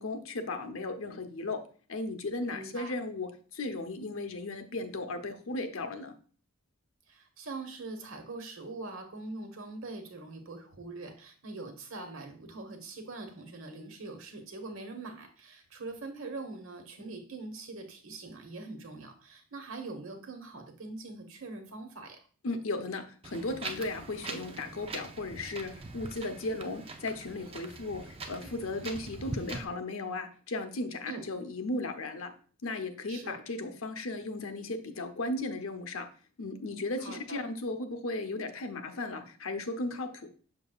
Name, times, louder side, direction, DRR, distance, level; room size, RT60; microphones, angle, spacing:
voice 1, 0.0-1.6 1.9-6.1 22.4-32.3 32.6-36.1 36.4-40.3, left 2 dB, 65° left, 6 dB, 0.8 m, -36 dB
voice 2, 2.5-2.9 7.1-22.2 31.1-31.2 33.1-33.4 37.0-37.4, right 3 dB, 65° right, 5 dB, 1.2 m, -43 dB
Wind, 23.2-29.6, right 3 dB, 25° right, 0.5 m, -42 dB
6.7 x 6.3 x 2.4 m, 0.42 s
head